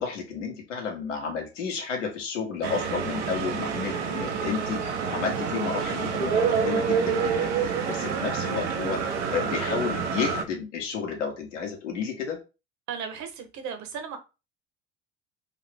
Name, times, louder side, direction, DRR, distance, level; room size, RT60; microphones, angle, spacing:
voice 1, 0.0-12.4, left 5 dB, 80° left, 1.4 m, -32 dB
sound 1, 2.6-10.4, right 6 dB, 70° right, 1.0 m, -27 dB
voice 2, 12.9-14.2, right 7 dB, 50° right, 1.3 m, -35 dB
4.7 x 2.8 x 3.5 m
figure-of-eight pair, 65°, 36 cm